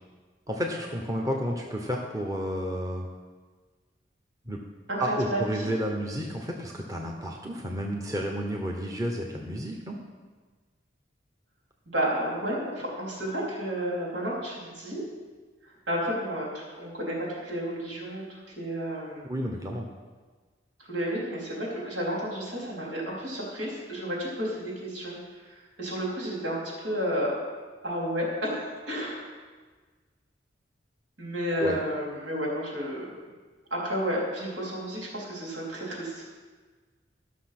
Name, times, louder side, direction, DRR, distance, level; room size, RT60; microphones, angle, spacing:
voice 1, 0.5-3.1 4.5-4.6 5.0-10.0 19.2-19.9 31.6-31.8, equal, 20° right, 0 dB, 1.0 m, -31 dB
voice 2, 4.9-5.5 11.9-15.0 15.9-19.3 20.9-25.2 25.8-27.3 27.8-29.2 31.2-33.1 33.7-36.2, equal, 85° right, -4 dB, 4.0 m, -31 dB
13.5 x 6.3 x 6.0 m, 1.4 s
head